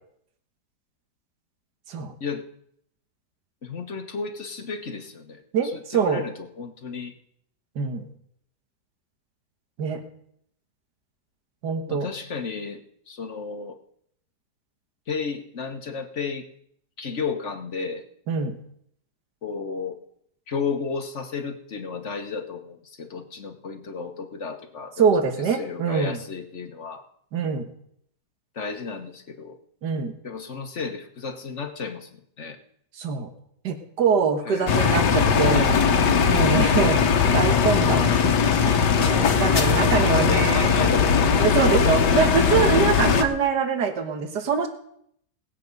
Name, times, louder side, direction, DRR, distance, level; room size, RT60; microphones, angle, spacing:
voice 1, 3.6-5.4 5.7-7.1 11.9-12.8 13.1-13.8 15.1-16.5 17.0-18.0 19.4-20.0 20.5-25.0 25.5-27.0 28.5-29.6 30.2-32.1 32.4-32.6 34.5-35.0 39.9-41.7, left 5 dB, 45° left, 7 dB, 1.4 m, -33 dB
voice 2, 5.5-6.2 7.8-8.0 9.8-10.0 11.6-12.1 18.3-18.6 25.0-26.2 27.3-27.6 29.8-30.1 33.0-33.3 33.6-35.8 36.2-37.0 37.3-38.1 38.7-40.9 41.4-44.7, right 6 dB, 80° right, 7 dB, 1.9 m, -24 dB
sound 1, 34.7-43.2, left 6 dB, 90° left, 1.8 m, -20 dB
19.0 x 8.4 x 5.3 m, 0.70 s
omnidirectional pair, 1.8 m